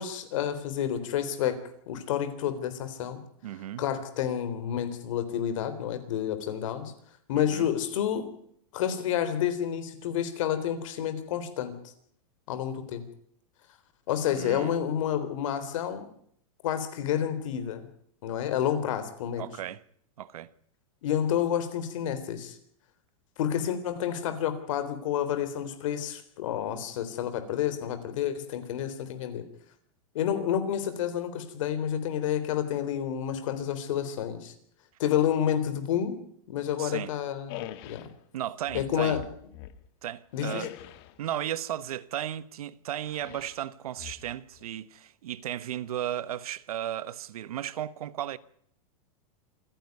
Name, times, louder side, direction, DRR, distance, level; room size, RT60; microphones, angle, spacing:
voice 1, 0.0-1.6 1.9-3.2 3.8-6.9 7.3-8.3 8.7-11.9 12.5-13.0 14.1-16.1 16.6-17.9 18.2-19.5 21.0-22.6 23.4-29.4 30.1-34.5 35.0-36.2 36.5-37.6 37.9-38.1 38.7-39.2 40.3-40.7, left 9 dB, 60° left, 3.7 m, -29 dB
voice 2, 3.4-3.8 7.4-7.7 14.4-14.7 19.4-19.8 20.2-20.5 36.8-37.1 38.3-39.2 40.0-40.7 41.2-48.4, right 11 dB, 85° right, 1.1 m, -35 dB
sound 1, 37.5-38.1 38.7-39.9 40.3-41.2 43.1-43.6 44.0-44.6, left 13 dB, 45° left, 1.5 m, -42 dB
27.0 x 10.5 x 9.5 m
supercardioid pair, 160°, 18 cm